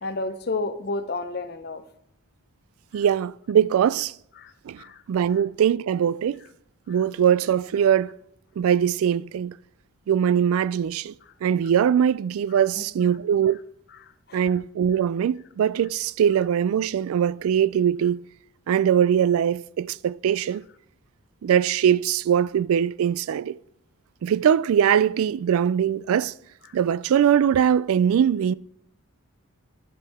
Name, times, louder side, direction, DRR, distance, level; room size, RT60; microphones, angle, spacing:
voice 1, 0.0-1.8 2.9-3.0 4.4-5.0 5.3-5.4 6.9-7.0 12.7-13.1 14.0-14.5 26.6-26.8, left 3 dB, 45° left, 0.6 m, -32 dB
voice 2, 2.9-4.1 4.7-4.8 5.1-6.4 6.9-8.1 8.6-9.6 10.1-11.1 11.4-13.6 14.3-18.2 18.7-20.6 21.4-23.6 24.2-26.3 26.7-28.5, right 8 dB, 80° right, 0.3 m, -21 dB
11.0 x 8.2 x 3.5 m
head